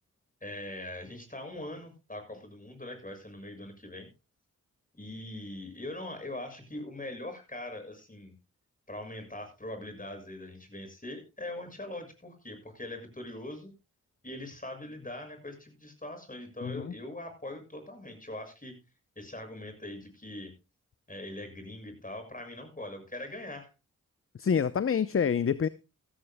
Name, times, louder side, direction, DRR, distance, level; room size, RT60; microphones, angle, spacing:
voice 1, 0.4-4.1 5.0-8.3 8.9-13.7 14.2-18.8 19.1-20.5 21.1-23.7, left 1 dB, 25° left, 6 dB, 6.7 m, -42 dB
voice 2, 16.6-16.9 24.4-25.7, left 7 dB, 40° left, 16 dB, 0.7 m, -27 dB
15.5 x 15.0 x 2.2 m, 0.28 s
supercardioid pair, 40°, 34 cm